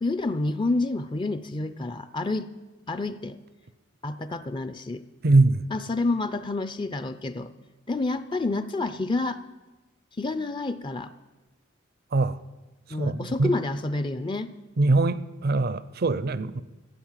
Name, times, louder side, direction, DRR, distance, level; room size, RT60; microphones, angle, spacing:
voice 1, 0.0-2.5 2.9-3.4 4.0-5.0 5.7-7.5 7.9-9.4 10.2-11.1 12.9-14.5, left 2 dB, 25° left, 0.5 m, -28 dB
voice 2, 5.2-5.7 12.1-12.4 13.0-13.5 14.8-16.6, right 2 dB, 50° right, 0.6 m, -22 dB
15.0 x 8.5 x 7.4 m
head